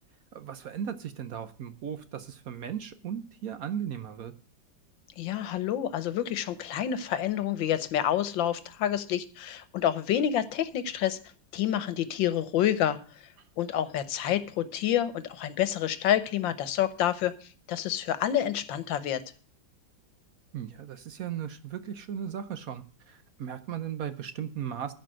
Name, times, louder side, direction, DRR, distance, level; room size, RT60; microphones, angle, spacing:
voice 1, 0.3-4.3 20.5-24.9, right 9 dB, 60° right, 11 dB, 1.0 m, -36 dB
voice 2, 5.2-11.2 11.5-13.0 13.6-17.3 17.7-19.2, left 11 dB, 90° left, 13 dB, 1.6 m, -28 dB
14.5 x 5.1 x 7.6 m, 0.42 s
omnidirectional pair, 2.0 m